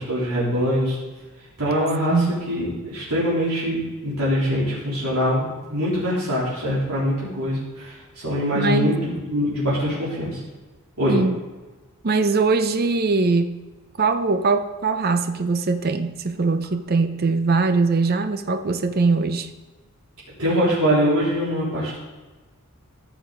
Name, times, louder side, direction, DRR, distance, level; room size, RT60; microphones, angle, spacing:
voice 1, 0.1-1.0 1.6-2.2 2.5-8.9 9.3-10.4 11.0-11.1 20.4-22.0, equal, 85° right, -8 dB, 3.5 m, -23 dB
voice 2, 8.5-9.0 11.1-11.4 12.0-13.5 14.0-19.5, right 3 dB, 45° right, 9 dB, 0.6 m, -21 dB
14.0 x 7.0 x 3.8 m, 1.3 s
head